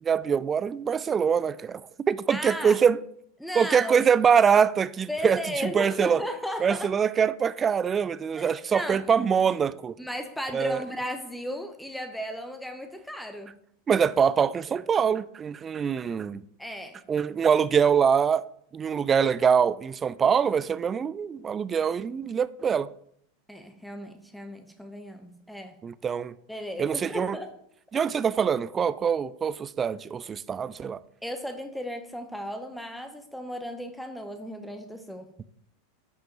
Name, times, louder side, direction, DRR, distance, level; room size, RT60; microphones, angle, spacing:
voice 1, 0.0-3.0 3.6-6.2 6.6-10.0 10.5-10.8 13.9-16.4 17.1-18.5 18.7-22.9 25.8-26.3 26.8-27.4 27.9-31.0, right 7 dB, 20° right, 0.3 m, -24 dB
voice 2, 2.3-2.8 3.4-4.0 5.1-6.9 8.4-9.0 10.0-13.6 16.6-17.0 23.5-25.8 26.5-27.5 27.9-28.0 31.2-35.3, equal, ahead, 0.8 m, -35 dB
12.5 x 5.7 x 2.9 m
figure-of-eight pair, 85°, 0 cm